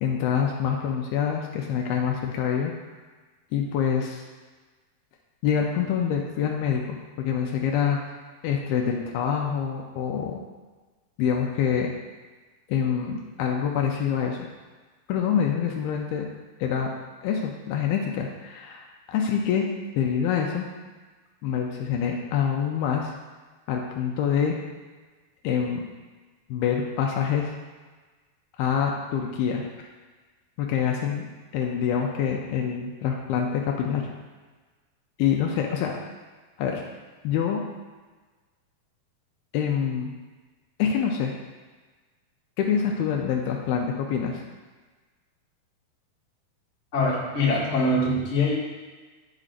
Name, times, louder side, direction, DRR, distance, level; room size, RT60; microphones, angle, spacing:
voice 1, 0.0-2.7 3.5-4.2 5.4-8.0 8.4-10.4 11.2-11.9 12.7-14.4 15.1-16.3 16.6-16.9 17.2-19.7 20.0-20.7 21.4-23.1 23.7-24.6 25.4-25.8 26.5-27.5 28.6-29.6 30.6-31.3 31.5-34.1 35.2-35.9 36.6-36.8 37.2-37.6 39.5-40.1 40.8-41.3 42.6-44.4, left 7 dB, 80° left, 0 dB, 2.3 m, -26 dB
voice 2, 46.9-48.5, left 2 dB, 35° left, -9 dB, 1.1 m, -23 dB
11.0 x 5.0 x 2.5 m, 1.3 s
omnidirectional pair, 4.5 m